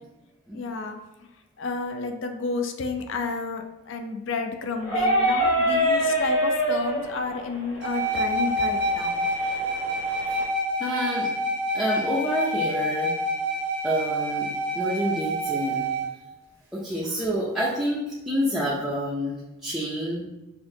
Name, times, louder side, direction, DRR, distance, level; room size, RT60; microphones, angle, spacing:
voice 1, 0.5-1.0 1.6-9.3, left 4 dB, 55° left, 5 dB, 0.4 m, -31 dB
sound 1, 4.8-10.4, equal, 75° left, 1.3 m, -26 dB
sound 2, 7.8-16.1, right 1 dB, 50° right, 0.7 m, -27 dB
voice 2, 10.8-11.3 11.7-13.1 13.8-15.9 16.7-20.2, equal, ahead, -8 dB, 0.4 m, -28 dB
5.7 x 2.6 x 2.7 m, 1.0 s
head